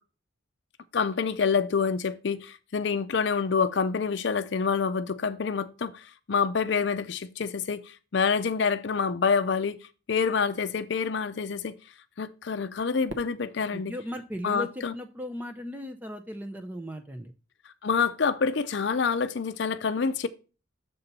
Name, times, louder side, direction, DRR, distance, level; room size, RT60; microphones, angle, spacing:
voice 1, 0.9-9.8 10.1-11.8 12.2-13.9 14.4-14.9 17.8-20.3, left 5 dB, 65° left, 0.5 m, -27 dB
Fireworks, 13.1-15.4, right 1 dB, 65° right, 0.9 m, -47 dB
voice 2, 13.7-17.3, left 1 dB, 10° right, 0.4 m, -37 dB
6.9 x 4.2 x 5.2 m
head